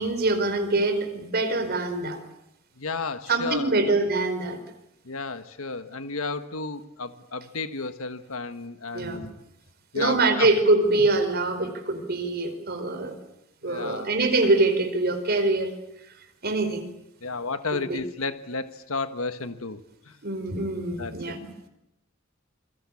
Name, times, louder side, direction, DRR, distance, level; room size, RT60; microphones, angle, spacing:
voice 1, 0.0-2.2 3.3-4.6 8.9-9.3 9.9-13.2 13.6-15.7 16.4-16.9 17.9-18.0 20.2-21.5, right 2 dB, 50° right, 8 dB, 4.6 m, -24 dB
voice 2, 2.8-3.8 5.0-9.3 9.9-10.5 13.6-14.1 17.2-19.8 20.1-20.2 21.0-21.4, left 4 dB, 85° left, 10 dB, 1.5 m, -32 dB
28.5 x 23.5 x 8.6 m, 0.86 s
head